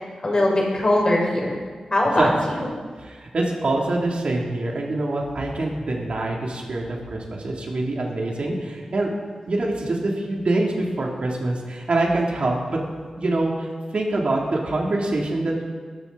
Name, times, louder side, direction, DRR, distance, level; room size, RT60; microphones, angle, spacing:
voice 1, 0.2-1.6 1.9-2.7, left 1 dB, 40° left, -2 dB, 5.3 m, -21 dB
voice 2, 3.0-9.1 9.5-12.8 13.2-13.7 13.9-15.7, right 2 dB, 60° right, -1 dB, 3.0 m, -25 dB
21.0 x 13.5 x 4.1 m, 1.5 s
wide cardioid pair, 95°, 2 cm